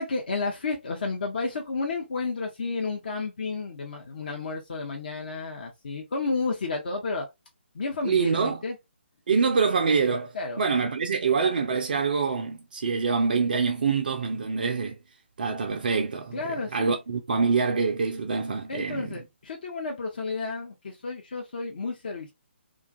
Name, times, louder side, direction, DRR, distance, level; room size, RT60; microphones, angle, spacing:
voice 1, 0.0-7.3 7.7-8.8 10.3-10.6 16.3-17.0 18.7-22.3, left 3 dB, 50° left, 0.6 m, -31 dB
voice 2, 8.0-8.6 9.3-15.0 15.4-19.2, right 5 dB, 50° right, 0.4 m, -25 dB
2.4 x 2.3 x 2.3 m
figure-of-eight pair, 140°, 6 cm